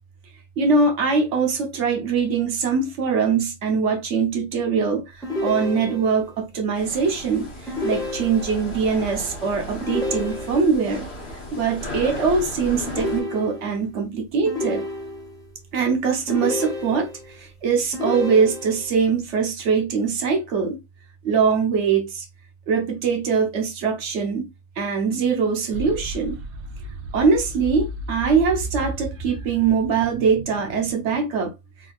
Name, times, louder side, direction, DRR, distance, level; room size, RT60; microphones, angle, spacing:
voice 1, 0.6-11.1 11.5-14.8 15.7-20.8 21.2-22.3 22.7-24.5 24.8-26.4 27.1-31.5, right 5 dB, 60° right, 1.1 m, -22 dB
sound 1, 5.2-6.3 7.7-8.7 9.8-10.8 12.9-13.9 14.5-15.4 16.3-17.3 17.9-18.9, left 1 dB, 5° left, 0.5 m, -30 dB
sound 2, 6.7-13.2, left 1 dB, 50° left, 1.3 m, -35 dB
sound 3, 25.7-31.2, right 2 dB, 75° right, 0.5 m, -34 dB
3.5 x 2.7 x 2.3 m
omnidirectional pair, 1.5 m